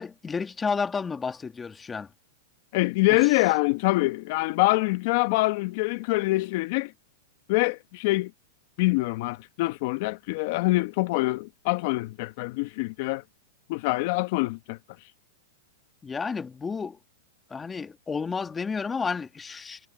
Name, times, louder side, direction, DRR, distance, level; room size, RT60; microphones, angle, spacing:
voice 1, 0.0-2.1 16.0-17.0 17.5-19.8, left 5 dB, 15° left, 1.8 m, -31 dB
voice 2, 2.7-6.9 7.5-8.3 8.8-13.2 13.7-14.8, left 22 dB, 55° left, 1.3 m, -25 dB
hypercardioid pair, 120°, 0 cm